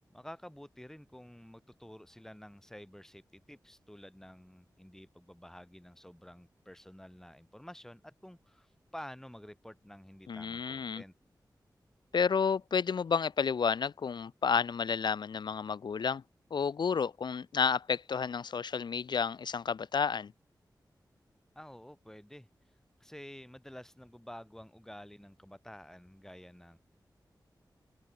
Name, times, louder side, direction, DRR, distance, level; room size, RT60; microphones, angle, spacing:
voice 1, 0.1-11.1 21.6-22.5 23.0-26.8, equal, 5° left, 5.2 m, -50 dB
voice 2, 10.3-11.0 12.1-16.2 16.5-20.3, left 6 dB, 75° left, 0.9 m, -31 dB
wide cardioid pair, 85°, 8 cm